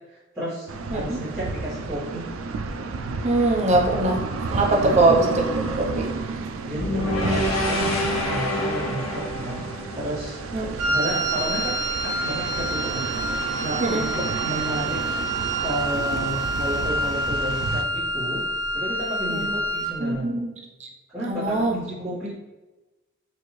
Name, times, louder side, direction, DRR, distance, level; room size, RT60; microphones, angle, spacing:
voice 1, 0.1-2.3 4.8-5.1 6.4-9.7 9.9-10.4 10.9-13.1 13.6-15.0 15.6-18.4 18.7-20.3 21.1-22.3, right 1 dB, 10° right, -14 dB, 1.3 m, -32 dB
sound 1, 0.7-17.8, right 4 dB, 80° right, 0.4 m, -32 dB
voice 2, 3.2-5.5 5.8-6.1 10.5-10.7 13.8-14.0 19.3-19.5 20.0-20.5 20.8-20.9 21.3-21.7, right 2 dB, 35° right, 0 dB, 0.6 m, -22 dB
sound 2, 6.8-11.0, left 1 dB, 90° left, 0.8 m, -27 dB
Wind instrument woodwind instrument, 10.8-20.0, right 1 dB, 60° right, 1.1 m, -27 dB
4.2 x 2.6 x 3.1 m, 1.1 s
head